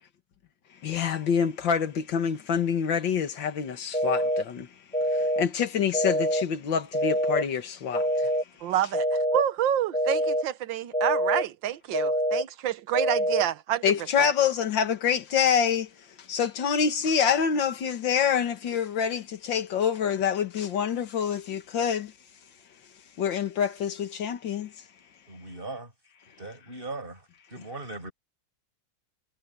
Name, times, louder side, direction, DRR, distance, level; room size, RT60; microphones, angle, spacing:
voice 1, 0.8-4.7 5.1-8.3 13.8-15.9 16.2-22.1 23.2-24.7, left 7 dB, 70° left, 2.2 m, -26 dB
sound 1, 3.9-4.4 4.9-5.4 5.9-6.4 6.9-7.4 7.9-8.4 8.9-9.4 9.9-10.4 10.9-11.4 11.9-12.4 12.9-13.4, equal, 5° left, 0.5 m, -25 dB
voice 2, 8.6-14.3, right 10 dB, 70° right, 1.6 m, -28 dB
voice 3, 25.3-25.9 26.4-27.2 27.5-28.1, right 2 dB, 25° right, 6.6 m, -38 dB
omnidirectional pair, 2.2 m